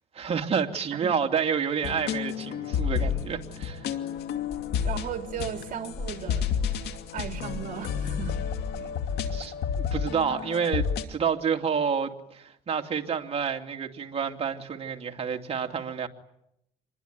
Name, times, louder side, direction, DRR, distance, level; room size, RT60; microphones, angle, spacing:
voice 1, 0.1-3.8 8.8-8.9 9.3-16.1, right 6 dB, 35° right, 2.8 m, -29 dB
sound 1, 1.8-11.1, left 7 dB, 75° left, 2.4 m, -31 dB
sound 2, 4.2-7.7 8.0-9.2, left 3 dB, 40° left, 3.0 m, -43 dB
voice 2, 4.8-6.5 7.1-8.4, right 9 dB, 55° right, 3.0 m, -36 dB
26.5 x 22.0 x 9.6 m
cardioid pair, 110°, 17 cm